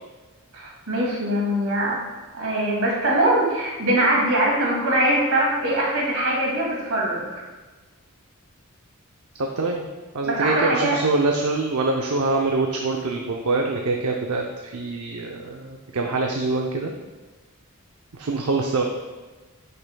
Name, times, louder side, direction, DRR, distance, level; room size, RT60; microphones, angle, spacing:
voice 1, 0.5-2.0 2.3-7.4 10.2-10.9, right 1 dB, 70° right, -3 dB, 2.4 m, -22 dB
voice 2, 9.4-9.9 10.1-16.9 18.1-18.9, right 3 dB, 85° right, 1 dB, 0.7 m, -24 dB
10.0 x 6.7 x 2.3 m, 1.3 s
head